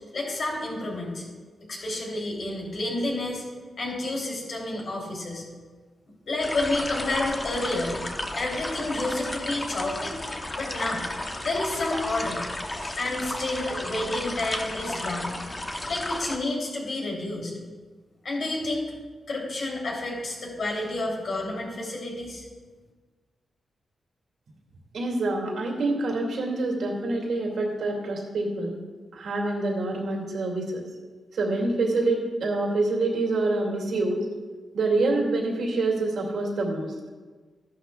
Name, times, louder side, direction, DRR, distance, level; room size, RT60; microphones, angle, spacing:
voice 1, 0.1-1.2 1.7-3.4 3.8-5.4 6.3-8.0 8.4-10.1 10.5-11.0 11.4-12.5 12.8-15.3 15.9-17.5 18.2-18.9 19.3-22.4, left 2 dB, 60° left, -2 dB, 3.2 m, -30 dB
sound 1, 6.4-16.4, left 1 dB, 25° left, 0.9 m, -33 dB
voice 2, 24.9-28.8 29.1-30.8 31.3-34.3 34.7-36.9, right 2 dB, 80° right, -1 dB, 2.4 m, -26 dB
14.0 x 11.5 x 2.4 m, 1.4 s
cardioid pair, 90°, 0 cm